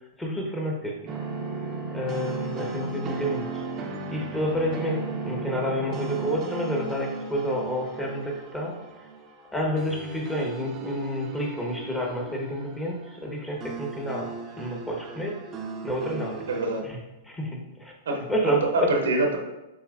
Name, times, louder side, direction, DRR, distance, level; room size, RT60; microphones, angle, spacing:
voice 1, 0.2-1.2 1.9-3.6 4.1-9.1 9.5-15.4 15.8-16.4 16.9-17.0 17.2-18.9, equal, 10° left, -1 dB, 1.1 m, -29 dB
sound 1, 1.1-16.8, right 4 dB, 30° right, 0.6 m, -36 dB
voice 2, 16.5-16.9 18.1-19.4, right 2 dB, 80° right, 2 dB, 0.9 m, -25 dB
7.0 x 3.0 x 2.5 m, 0.99 s
hypercardioid pair, 115°, 0 cm